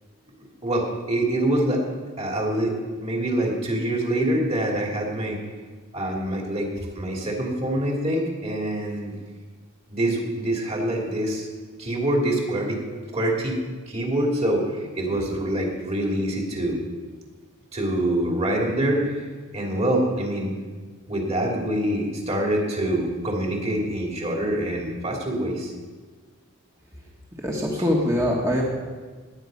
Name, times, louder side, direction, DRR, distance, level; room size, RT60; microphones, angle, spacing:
voice 1, 0.6-1.8 2.2-2.7 3.0-5.4 5.9-9.1 9.9-11.5 11.8-12.8 13.1-13.6 13.9-16.8 17.7-19.2 19.5-20.5 21.1-25.7, right 1 dB, 30° right, -1 dB, 3.0 m, -25 dB
voice 2, 27.4-28.6, equal, 15° right, -3 dB, 1.6 m, -23 dB
18.5 x 10.0 x 5.4 m, 1.4 s
head